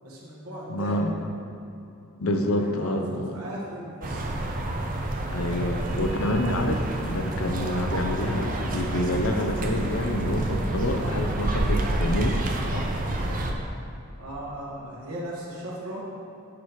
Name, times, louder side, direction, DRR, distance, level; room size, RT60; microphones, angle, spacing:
voice 1, 0.0-1.0 2.2-4.3 6.4-6.8 7.5-7.8 14.2-16.1, right 1 dB, 80° right, -5 dB, 1.7 m, -38 dB
voice 2, 0.7-1.3 2.2-3.4 5.3-12.4 12.7-12.8, left 1 dB, 75° left, 5 dB, 0.6 m, -27 dB
sound 1, 4.0-13.5, right 1 dB, 40° right, 0.6 m, -28 dB
6.9 x 4.9 x 4.8 m, 2.7 s
head